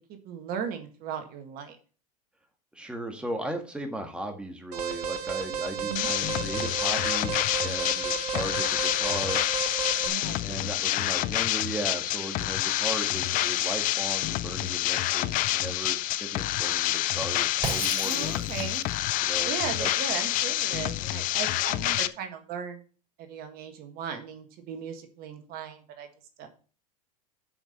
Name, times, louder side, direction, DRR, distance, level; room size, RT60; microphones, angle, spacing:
voice 1, 0.2-1.8 5.7-6.1 10.0-10.7 18.0-18.8 19.4-22.8 23.2-26.1 26.4-26.5, right 7 dB, 50° right, 6 dB, 1.7 m, -37 dB
voice 2, 2.8-9.4 10.4-18.5 19.2-19.5 19.8-19.9, right 1 dB, 5° right, 4 dB, 1.7 m, -37 dB
Alarm, 4.7-10.1, right 7 dB, 85° right, 1.5 m, -33 dB
sound 1, 6.0-22.1, left 15 dB, 45° left, 0.5 m, -28 dB
Shatter, 17.6-18.8, right 3 dB, 20° right, 4.9 m, -34 dB
7.1 x 5.4 x 6.6 m, 0.38 s
hypercardioid pair, 95°, 20 cm